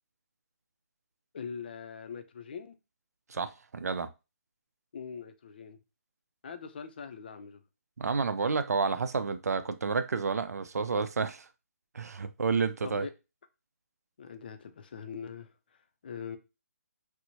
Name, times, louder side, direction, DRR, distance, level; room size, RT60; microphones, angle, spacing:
voice 1, 1.3-2.7 4.9-5.8 6.4-7.6 12.8-13.1 14.2-15.5 16.0-16.4, left 6 dB, 35° left, 0.4 m, -42 dB
voice 2, 3.3-4.1 8.0-11.5 11.9-13.1, right 5 dB, 80° right, 0.5 m, -30 dB
4.4 x 2.1 x 2.7 m
hypercardioid pair, 170°, 8 cm